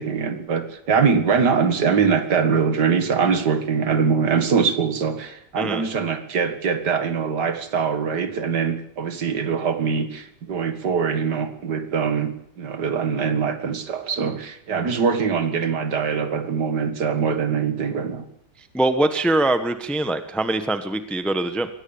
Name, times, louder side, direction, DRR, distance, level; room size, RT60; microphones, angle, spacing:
voice 1, 0.0-18.3, right 6 dB, 75° right, 2.3 m, -23 dB
voice 2, 18.7-21.7, right 2 dB, ahead, 1.1 m, -23 dB
22.0 x 17.5 x 7.2 m
omnidirectional pair, 1.8 m